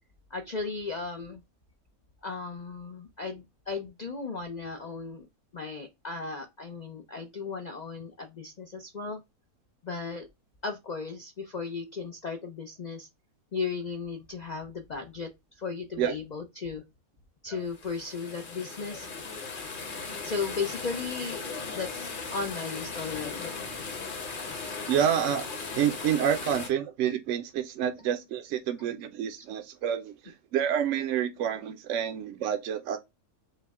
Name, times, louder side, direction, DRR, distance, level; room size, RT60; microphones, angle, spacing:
voice 1, 0.3-1.4 2.2-5.3 5.5-9.2 9.8-10.3 10.6-13.1 13.5-16.8 17.4-19.3 20.0-21.5 21.7-23.5 28.0-28.1 29.4-29.5, left 4 dB, 80° left, 0.3 m, -36 dB
sound 1, 17.7-26.7, left 4 dB, 40° left, 0.9 m, -37 dB
voice 2, 24.9-25.5 25.8-33.0, right 9 dB, 65° right, 0.8 m, -28 dB
5.6 x 2.1 x 3.5 m
omnidirectional pair, 1.6 m